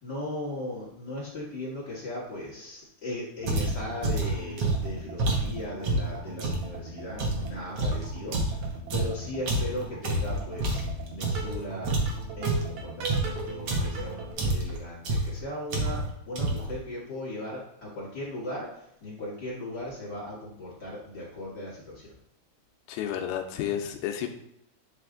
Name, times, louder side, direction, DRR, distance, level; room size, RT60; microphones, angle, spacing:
voice 1, 0.0-10.8 11.1-11.9 12.4-22.1, left 1 dB, 45° left, -6 dB, 1.4 m, -38 dB
sound 1, 3.4-14.3, right 4 dB, 60° right, 2.2 m, -41 dB
sound 2, 3.5-6.7 7.2-11.6 11.8-14.0 14.4-14.8 15.0-15.4 15.7-16.1 16.4-16.8, right 2 dB, 85° right, 1.3 m, -28 dB
voice 2, 22.9-24.3, left 10 dB, 80° left, 4 dB, 2.5 m, -31 dB
9.6 x 3.3 x 3.7 m, 0.75 s
omnidirectional pair, 4.5 m